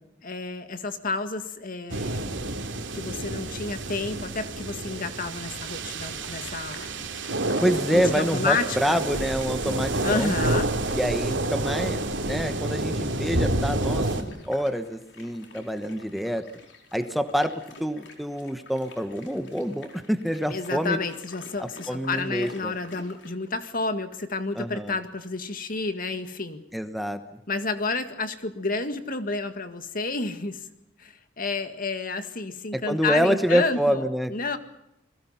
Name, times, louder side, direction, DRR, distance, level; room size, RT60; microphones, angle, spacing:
voice 1, 0.2-2.4 2.9-7.1 7.5-9.0 10.0-10.7 20.5-26.6 27.5-30.7 31.0-34.0 34.3-34.6, left 3 dB, 50° left, 9 dB, 2.0 m, -30 dB
sound 1, 1.9-14.2, right 2 dB, 80° right, 2.9 m, -29 dB
sound 2, 6.2-23.3, left 2 dB, 70° left, 4.7 m, -49 dB
voice 2, 7.6-10.3 10.9-16.4 16.9-17.5 17.8-21.0 21.6-22.7 24.5-25.0 26.7-27.2 32.7-34.3, equal, ahead, 8 dB, 1.2 m, -27 dB
28.5 x 21.0 x 5.8 m, 0.82 s
head